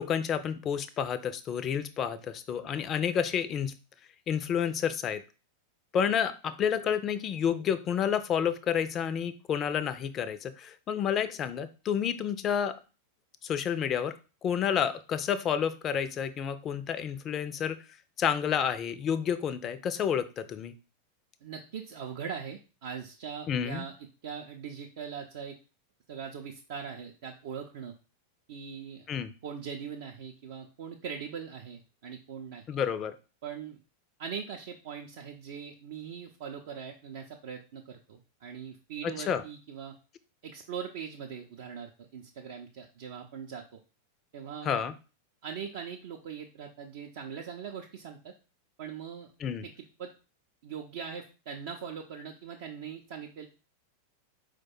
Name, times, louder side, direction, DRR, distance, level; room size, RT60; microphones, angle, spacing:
voice 1, 0.0-3.7 4.3-5.2 5.9-12.8 13.4-14.2 14.4-17.8 18.2-20.7 23.5-23.9 29.1-29.3 32.7-33.2 39.3-39.4 44.6-44.9 49.4-49.7, left 8 dB, 30° left, 12 dB, 0.4 m, -30 dB
voice 2, 21.4-23.9 24.2-25.6 26.1-27.9 28.5-29.1 29.4-32.6 33.4-33.8 34.2-39.9 40.4-43.8 44.3-44.7 45.4-48.3 48.8-49.3 49.6-50.1 50.6-53.5, right 7 dB, 55° right, 1 dB, 0.4 m, -41 dB
4.6 x 2.2 x 4.3 m, 0.33 s
figure-of-eight pair, 90°, 0 cm